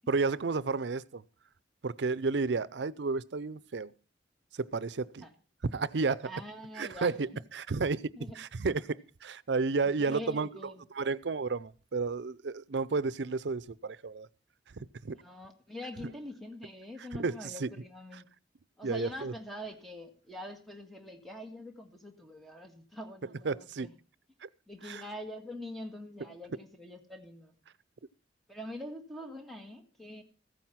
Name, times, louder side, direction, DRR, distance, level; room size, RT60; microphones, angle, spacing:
voice 1, 0.1-1.2 1.8-3.9 4.6-5.2 5.7-6.3 6.8-10.5 11.0-14.3 15.0-15.2 17.2-17.3 17.6-17.7 18.8-19.3 23.4-23.9 24.4-24.5 24.9-25.0, right 4 dB, 75° right, 0.6 m, -32 dB
voice 2, 6.2-7.4 8.2-8.4 9.8-10.9 15.1-18.3 18.8-23.9 24.7-27.6 28.5-30.2, left 1 dB, ahead, 1.7 m, -44 dB
15.5 x 9.2 x 5.7 m
head